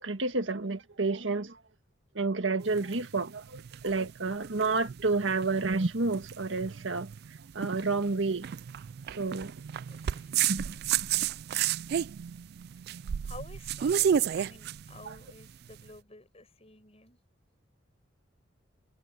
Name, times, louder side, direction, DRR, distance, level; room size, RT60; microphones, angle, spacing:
voice 1, 0.0-1.6 2.1-7.1 7.5-8.5 9.2-9.5 10.5-10.8 15.0-15.1, right 3 dB, 80° right, 1.7 m, -30 dB
sound 1, 2.6-15.8, right 9 dB, 55° right, 0.3 m, -32 dB
voice 2, 9.9-10.3 11.9-12.3 13.2-17.2, left 2 dB, 35° left, 6.4 m, -51 dB
head